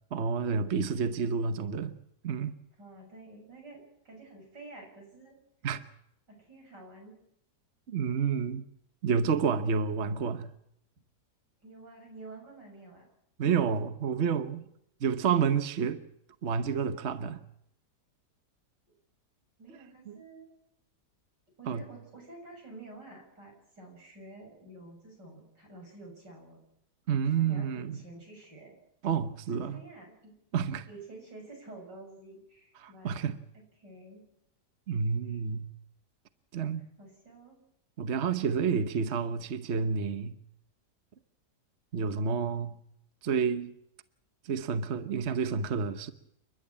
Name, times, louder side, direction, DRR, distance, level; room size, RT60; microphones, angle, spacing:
voice 1, 0.1-1.9 2.2-2.6 5.6-5.8 7.9-8.6 9.0-10.5 13.4-14.6 15.0-16.0 16.4-17.4 20.1-20.2 21.7-21.8 27.1-28.0 29.0-29.8 30.5-30.9 32.8-33.4 34.9-35.7 36.5-36.9 38.0-40.3 41.9-42.8 43.2-43.7 44.4-46.1, right 6 dB, 45° right, 1.1 m, -29 dB
voice 2, 2.8-5.4 6.3-7.2 11.6-13.1 19.6-20.5 21.6-26.6 27.3-28.8 29.5-30.3 30.9-33.1 33.5-34.2 35.2-35.4 37.0-37.6, right 2 dB, 85° right, 7.6 m, -49 dB
29.5 x 11.5 x 8.6 m
omnidirectional pair, 1.8 m